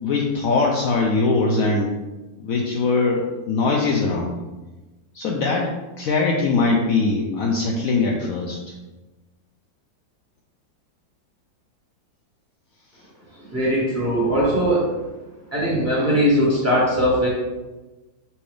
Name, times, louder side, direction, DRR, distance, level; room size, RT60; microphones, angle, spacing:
voice 1, 0.0-2.0 2.4-4.4 5.1-5.7 6.0-8.7, left 3 dB, 85° left, -1 dB, 0.7 m, -21 dB
voice 2, 13.5-14.9 15.5-17.3, equal, 10° right, -6 dB, 1.1 m, -20 dB
5.6 x 2.7 x 3.3 m, 1.1 s
omnidirectional pair, 2.1 m